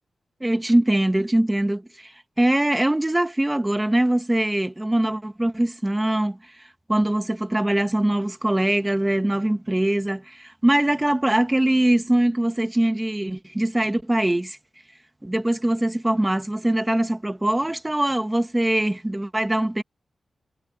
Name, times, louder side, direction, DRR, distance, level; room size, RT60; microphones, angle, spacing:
voice 1, 0.4-2.1 2.4-6.4 6.9-14.6 15.2-19.8, right 1 dB, 10° right, 1.5 m, -22 dB
wide cardioid pair, 165°, 0 cm